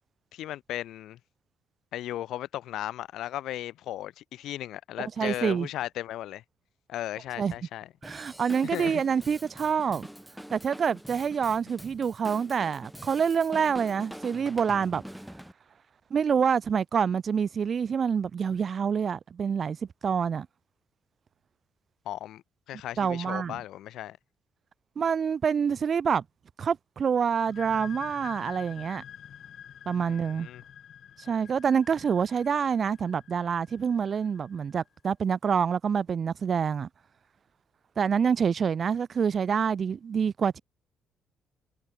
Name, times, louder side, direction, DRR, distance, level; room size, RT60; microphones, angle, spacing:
voice 1, 0.3-1.2 1.9-6.4 6.9-7.9 8.7-9.0 22.1-24.2 30.1-30.6, left 13 dB, 75° left, 0.3 m, -36 dB
voice 2, 5.0-5.7 7.4-7.5 8.0-10.1 10.5-15.0 16.1-19.8 20.0-20.5 23.0-23.6 25.0-26.2 26.6-29.0 29.9-30.5 31.3-36.9 38.0-40.6, right 7 dB, 35° right, 0.5 m, -27 dB
Drum kit / Drum, 8.0-15.5, equal, ahead, 0.8 m, -45 dB
sound 1, 27.3-34.8, left 9 dB, 55° left, 1.1 m, -47 dB
cardioid pair, 150°, 0 cm